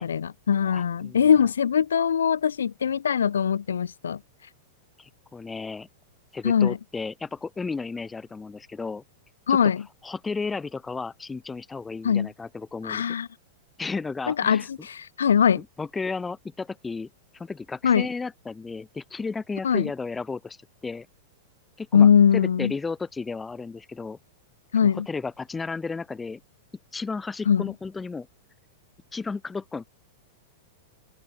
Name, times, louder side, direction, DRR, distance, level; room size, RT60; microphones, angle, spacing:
voice 1, 0.0-4.2 6.4-6.8 9.5-9.8 12.0-12.3 12.8-13.3 14.3-15.6 17.8-18.1 19.6-19.9 21.9-22.7 24.7-25.1 27.5-27.7, left 7 dB, 80° left, 1.5 m, -21 dB
voice 2, 0.6-1.2 5.0-5.9 6.3-9.0 9.5-9.6 10.0-13.2 13.8-14.7 15.5-17.1 17.3-20.6 20.8-21.1 21.8-22.1 22.3-24.2 24.8-26.4 26.9-28.3 29.1-29.9, left 4 dB, 15° left, 3.7 m, -33 dB
open air
hypercardioid pair, 105°, 0 cm